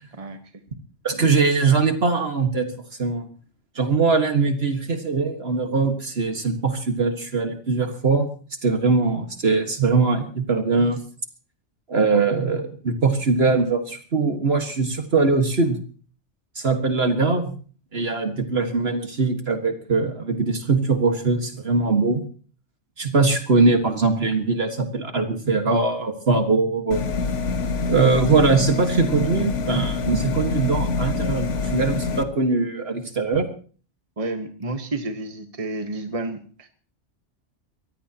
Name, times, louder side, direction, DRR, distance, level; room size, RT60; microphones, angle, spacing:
voice 1, 1.0-2.7 3.0-3.3 3.8-8.3 8.6-11.0 11.9-15.8 16.6-17.5 17.9-22.2 23.0-27.0 27.9-33.5, right 4 dB, 60° right, 6 dB, 1.9 m, -21 dB
sound 1, 26.9-32.2, left 4 dB, 80° left, 1.6 m, -26 dB
voice 2, 34.2-36.7, right 2 dB, 30° right, 6 dB, 1.4 m, -30 dB
24.0 x 17.0 x 2.9 m, 0.41 s
omnidirectional pair, 1.2 m